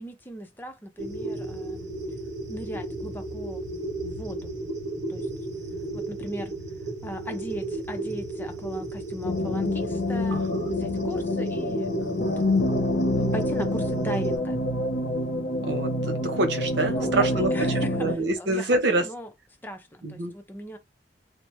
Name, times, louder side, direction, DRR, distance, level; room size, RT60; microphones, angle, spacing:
voice 1, 0.0-1.9 2.5-3.6 4.0-4.5 5.1-5.3 5.9-6.5 7.0-12.2 13.1-14.6 16.9-18.1 18.4-19.3 19.6-20.8, equal, 10° left, 0.6 m, -38 dB
sound 1, 1.0-14.4, right 2 dB, 45° right, 1.3 m, -34 dB
sound 2, 9.2-18.2, left 1 dB, 65° left, 0.8 m, -27 dB
voice 2, 10.3-10.7 15.6-19.1 20.0-20.3, right 2 dB, 85° right, 0.8 m, -27 dB
3.1 x 2.1 x 3.1 m
head